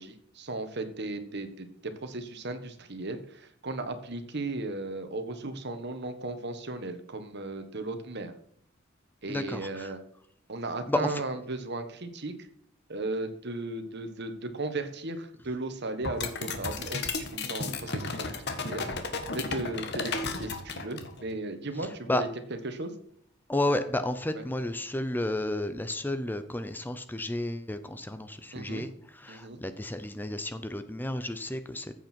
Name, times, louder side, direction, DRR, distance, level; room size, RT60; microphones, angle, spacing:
voice 1, 0.0-8.3 9.2-10.0 10.5-12.3 12.9-22.9 24.3-24.4 28.5-28.9 29.3-29.6, right 2 dB, 55° right, 9 dB, 1.4 m, -36 dB
voice 2, 9.3-9.9 10.9-11.1 22.1-22.2 23.5-31.9, left 1 dB, 10° left, 10 dB, 0.6 m, -32 dB
sound 1, 16.0-21.2, left 4 dB, 55° left, 1.6 m, -33 dB
14.5 x 7.9 x 4.5 m, 0.67 s
head